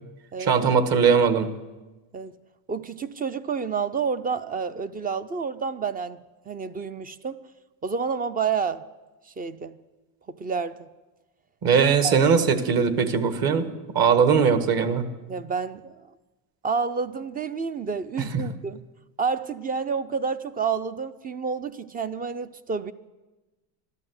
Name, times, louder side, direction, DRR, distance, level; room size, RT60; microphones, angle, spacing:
voice 1, 0.4-1.5 11.6-13.7 13.9-15.0 18.3-18.4, right 6 dB, 45° right, 10 dB, 1.6 m, -20 dB
voice 2, 2.7-7.4 7.8-8.8 9.3-9.8 10.3-10.9 12.0-12.2 15.3-16.1 16.6-18.8 19.2-22.9, right 5 dB, 20° right, 14 dB, 0.4 m, -29 dB
13.0 x 12.5 x 7.9 m, 1.1 s
supercardioid pair, 115°, 49 cm